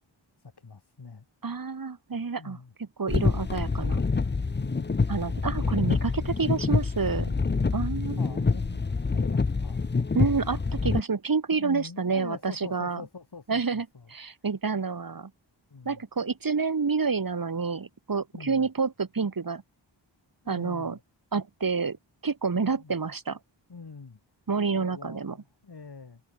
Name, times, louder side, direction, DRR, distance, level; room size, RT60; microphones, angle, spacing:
voice 1, 0.4-1.3 2.4-2.7 4.6-5.0 6.4-6.7 7.2-7.8 8.2-9.8 11.5-14.1 15.7-16.0 18.3-18.7 20.4-21.0 22.5-23.0 23.7-24.2 24.7-26.2, left 4 dB, 55° left, 5.6 m, -44 dB
voice 2, 1.4-2.6 3.0-4.0 5.1-7.3 7.7-8.2 10.1-13.0 13.5-15.3 15.9-19.6 20.5-21.0 21.3-22.0 22.2-23.4 24.5-25.4, right 5 dB, 45° right, 2.3 m, -28 dB
sound 1, 3.1-11.0, left 4 dB, 25° left, 0.7 m, -26 dB
wide cardioid pair, 80°, 46 cm